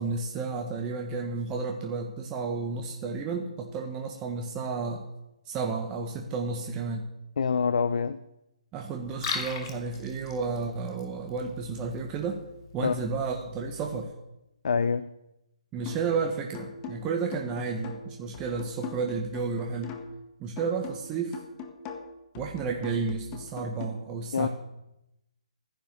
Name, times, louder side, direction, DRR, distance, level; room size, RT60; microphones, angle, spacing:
voice 1, 0.0-5.1 5.4-7.1 8.7-12.4 12.7-14.1 15.7-20.0 20.4-21.4 22.3-24.5, right 4 dB, 20° right, 1 dB, 1.4 m, -32 dB
voice 2, 7.4-8.2 12.8-12.9 14.6-15.1 24.3-24.5, left 5 dB, 65° left, 14 dB, 0.7 m, -25 dB
Liquid, 9.0-14.0, left 4 dB, 40° left, 2.8 m, -40 dB
sound 1, 15.9-16.2 16.5-20.2 20.6-23.9, left 5 dB, 25° left, 1.8 m, -42 dB
15.0 x 10.5 x 6.7 m, 0.88 s
hypercardioid pair, 145°, 4 cm